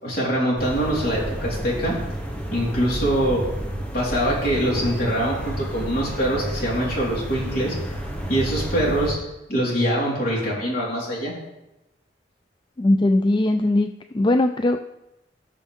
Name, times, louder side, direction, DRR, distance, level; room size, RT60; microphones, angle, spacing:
voice 1, 0.0-2.0 2.5-3.4 3.9-7.8 8.3-9.2 9.5-11.3, right 1 dB, 55° left, -4 dB, 4.2 m, -23 dB
sound 1, 0.6-9.1, equal, 10° left, 1.4 m, -31 dB
voice 2, 12.8-13.9 14.1-14.9, left 1 dB, 25° left, 7 dB, 0.3 m, -19 dB
18.0 x 6.2 x 3.6 m, 0.96 s
head